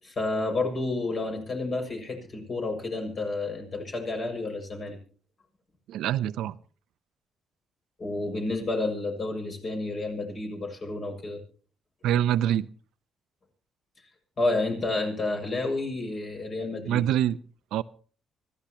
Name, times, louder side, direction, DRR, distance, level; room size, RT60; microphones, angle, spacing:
voice 1, 0.0-5.0 8.0-11.4 14.4-17.0, left 2 dB, 45° left, 6.5 m, -30 dB
voice 2, 5.9-6.6 12.0-12.7 16.9-17.4 17.7-17.8, right 11 dB, 85° right, 0.6 m, -25 dB
25.0 x 14.5 x 3.0 m
cardioid pair, 90°, 0 cm